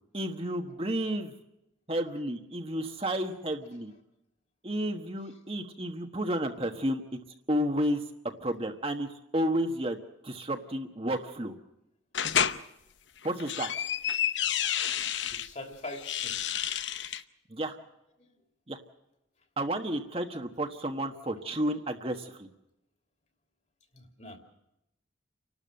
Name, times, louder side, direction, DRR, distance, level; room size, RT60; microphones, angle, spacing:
voice 1, 0.1-1.3 1.9-3.9 4.6-7.0 7.5-8.0 8.4-10.0 10.2-11.5 13.2-13.7 17.5-17.8 18.7-18.8 19.6-22.5, right 1 dB, 30° right, 5 dB, 1.3 m, -31 dB
sound 1, 12.1-12.6 13.2-15.5 15.9-17.2, left 9 dB, 70° left, 0.9 m, -30 dB
voice 2, 15.3-16.5 18.2-18.3 23.9-24.4, left 2 dB, 35° left, 4 dB, 3.1 m, -43 dB
29.5 x 12.5 x 7.7 m, 0.85 s
head